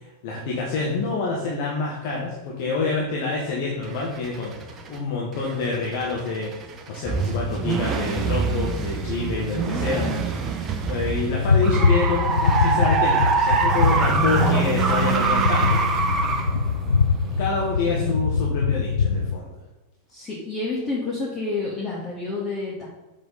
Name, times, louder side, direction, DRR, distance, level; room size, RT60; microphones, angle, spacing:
voice 1, 0.2-6.5 6.9-10.0 10.5-15.8 17.4-19.5, left 4 dB, 50° left, -3 dB, 1.5 m, -27 dB
sound 1, 3.8-5.0 5.4-17.9, right 5 dB, 25° right, 0.9 m, -25 dB
voice 2, 9.9-10.2 17.9-18.2 20.1-22.9, left 3 dB, 20° left, -6 dB, 2.0 m, -29 dB
sound 2, 11.3-19.4, left 5 dB, 70° left, 0.4 m, -23 dB
7.1 x 6.0 x 4.1 m, 1.1 s
figure-of-eight pair, 90°, 0 cm